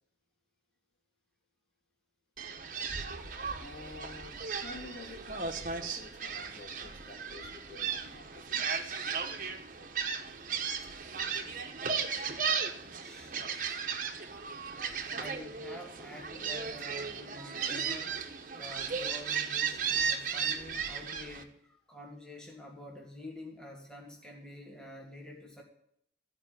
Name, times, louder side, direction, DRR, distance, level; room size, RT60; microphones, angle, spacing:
Gull seagull, 2.4-21.4, right 6 dB, 45° right, 1.1 m, -35 dB
voice 1, 3.5-8.9, left 2 dB, 70° left, -1 dB, 3.0 m, -49 dB
voice 2, 12.5-13.8 15.1-18.2 18.5-25.6, left 1 dB, 5° left, -1 dB, 1.9 m, -48 dB
14.0 x 5.1 x 9.0 m, 0.70 s
head